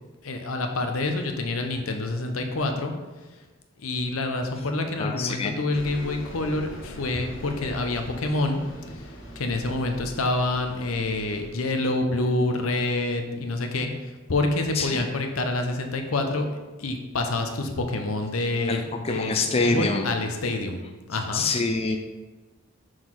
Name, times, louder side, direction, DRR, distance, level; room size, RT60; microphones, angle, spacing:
voice 1, 0.2-2.9 3.8-8.6 9.0-9.1 9.4-16.5 16.8-20.8 21.1-21.4, left 2 dB, 90° left, 5 dB, 0.8 m, -27 dB
voice 2, 5.0-5.6 14.7-15.1 18.7-20.1 21.3-22.0, left 3 dB, 30° left, 4 dB, 0.4 m, -26 dB
Bus, 5.7-11.5, equal, 65° left, 1.3 m, -41 dB
6.2 x 3.9 x 4.6 m, 1.3 s
head